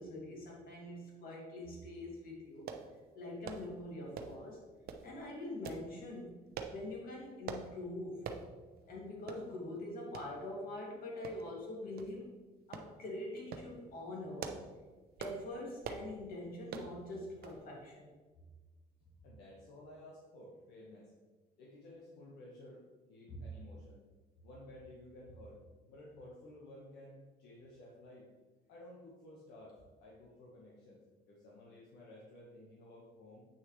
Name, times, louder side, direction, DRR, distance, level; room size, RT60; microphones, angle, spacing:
voice 1, 0.0-2.7 3.1-4.7 5.0-8.3 8.9-12.4 12.7-14.6 15.2-18.1 23.3-23.5, left 1 dB, 60° left, -2 dB, 2.6 m, -44 dB
sound 1, 2.7-2.9 3.4-3.7 4.1-4.4 4.9-5.1 5.6-5.9 6.5-6.8 7.5-7.7 8.2-8.5 8.8-8.9 9.3-9.4 10.1-10.3 11.2-11.6 12.0-12.1 12.7-12.9 13.4-13.7 14.2-14.7 15.2-15.4 15.8-16.1 16.7-16.9 17.4-17.6 17.9-18.0, right 7 dB, 65° right, 0.8 m, -43 dB
voice 2, 19.2-21.1 21.6-22.8 23.1-24.0 24.4-25.6 25.9-28.3 28.7-31.0 31.3-33.5, left 1 dB, 80° left, -4 dB, 1.5 m, -54 dB
8.7 x 6.2 x 3.3 m, 1.3 s
cardioid pair, 110°, 17 cm